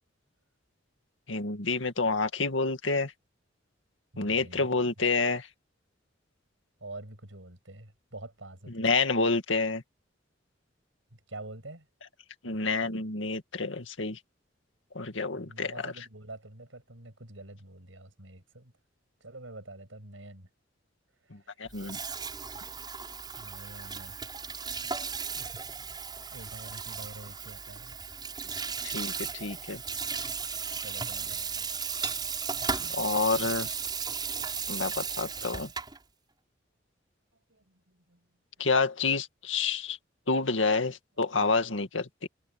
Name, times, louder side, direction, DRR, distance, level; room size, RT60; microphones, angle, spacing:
voice 1, 1.3-3.1 4.2-5.5 8.7-9.8 12.4-14.2 14.9-15.9 21.3-22.0 28.8-29.8 32.7-33.8 34.7-35.7 38.6-40.0 40.3-42.3, left 4 dB, 80° left, 2.1 m, -28 dB
voice 2, 4.1-4.7 6.8-8.9 11.1-11.9 15.3-18.7 19.2-20.5 21.3-21.5 23.4-24.2 25.4-25.6 26.3-28.0 30.8-31.7 37.5-38.3, right 2 dB, 85° right, 6.7 m, -47 dB
Water tap faucet / Sink (filling or washing), 21.7-36.0, right 5 dB, 20° right, 6.9 m, -35 dB
head